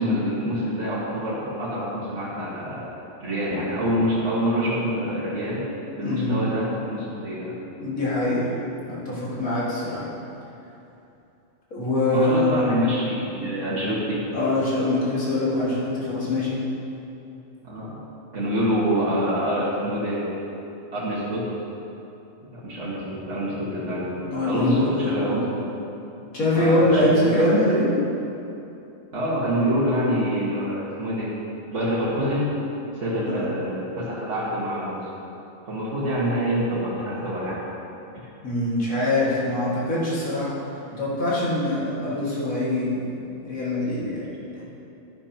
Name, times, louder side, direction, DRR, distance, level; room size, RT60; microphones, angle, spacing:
voice 1, 0.0-2.9 3.2-5.6 6.0-7.5 12.1-14.2 17.7-18.0 18.3-20.3 20.9-21.5 22.5-25.4 26.6-27.5 29.1-31.3 31.7-32.5 33.0-35.0 35.7-37.6 38.1-38.3, equal, 60° right, -9 dB, 1.9 m, -26 dB
voice 2, 6.0-6.4 7.8-8.6 8.8-10.1 11.7-12.7 14.3-16.6 24.3-25.5 26.3-27.9 33.2-33.5 38.4-40.5 40.9-44.3 44.5-44.6, left 1 dB, 80° left, -8 dB, 2.5 m, -23 dB
10.5 x 10.5 x 2.9 m, 2.8 s
omnidirectional pair, 1.4 m